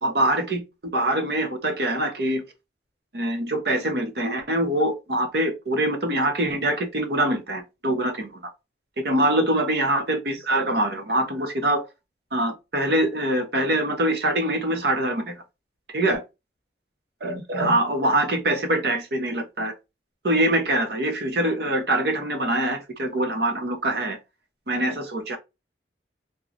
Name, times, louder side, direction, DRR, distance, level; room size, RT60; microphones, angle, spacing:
voice 1, 0.0-2.4 3.1-8.4 9.0-11.8 12.3-15.4 15.9-16.2 17.2-19.7 20.2-24.2 24.7-25.4, right 1 dB, 70° right, 0.9 m, -24 dB
3.8 x 2.2 x 2.9 m
head